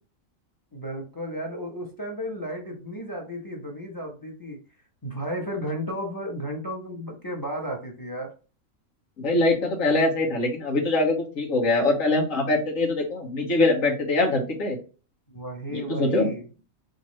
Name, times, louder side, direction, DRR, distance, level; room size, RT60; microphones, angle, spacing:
voice 1, 0.7-4.6 5.0-8.3 15.3-16.6, equal, 20° left, 1 dB, 0.8 m, -33 dB
voice 2, 9.2-14.8 15.7-16.3, left 2 dB, 80° left, -1 dB, 1.6 m, -23 dB
5.2 x 2.7 x 3.1 m, 0.34 s
omnidirectional pair, 1.4 m